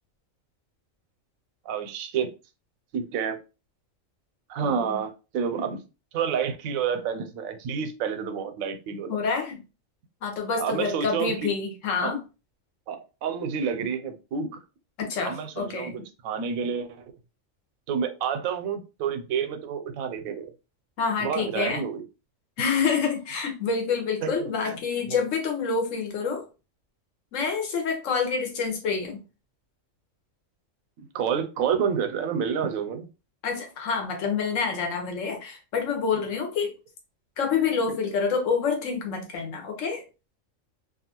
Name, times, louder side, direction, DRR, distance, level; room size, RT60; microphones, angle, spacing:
voice 1, 1.7-2.3 2.9-3.4 4.5-5.8 6.1-9.1 10.6-11.5 12.0-12.1 12.9-14.6 15.2-17.0 17.9-20.5 21.2-22.0 24.2-24.8 25.1-25.2 31.0-33.1, right 7 dB, 85° right, 1.0 m, -29 dB
voice 2, 4.6-5.0 9.1-9.6 10.2-12.2 15.0-15.9 21.0-21.8 22.6-26.4 27.3-29.2 33.4-36.7 37.4-40.0, left 5 dB, 75° left, 1.1 m, -27 dB
2.6 x 2.3 x 2.8 m
omnidirectional pair, 1.4 m